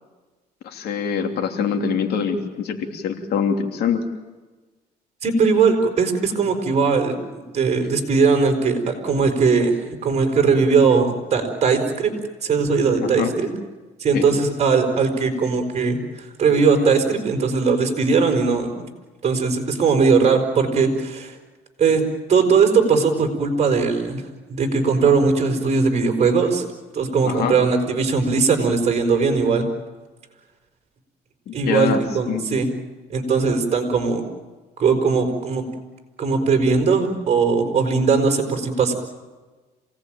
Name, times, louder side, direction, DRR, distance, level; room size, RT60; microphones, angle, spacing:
voice 1, 0.6-4.0 13.0-13.3 14.1-14.3 27.2-27.6 31.5-32.4, left 6 dB, 70° left, 5 dB, 3.1 m, -24 dB
voice 2, 5.2-12.1 12.4-13.5 14.0-18.7 19.2-21.3 21.8-22.0 22.3-24.2 24.5-26.6 26.9-29.6 31.5-32.7 33.1-34.2 34.8-35.6 36.2-38.9, right 5 dB, 40° right, 4 dB, 5.2 m, -19 dB
27.5 x 18.5 x 9.1 m, 1.3 s
cardioid pair, 110°, 17 cm